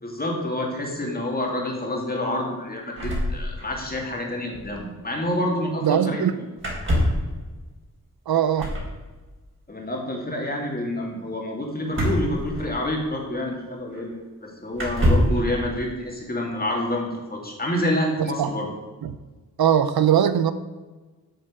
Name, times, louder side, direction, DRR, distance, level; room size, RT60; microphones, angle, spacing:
voice 1, 0.0-6.2 9.7-14.1 14.4-18.7, left 1 dB, 25° left, -1 dB, 2.6 m, -28 dB
sound 1, 3.0-4.0 4.3-4.4 4.5-4.8 6.6-7.3 8.6-8.9 11.9-13.1 13.9-14.0 14.7-15.4, equal, 35° right, 3.6 m, -24 dB
voice 2, 5.8-6.3 8.3-8.7 18.2-18.5 19.0-19.1 19.6-20.5, right 9 dB, 80° right, 12 dB, 0.7 m, -20 dB
8.0 x 7.7 x 6.7 m, 1.3 s
wide cardioid pair, 120°, 37 cm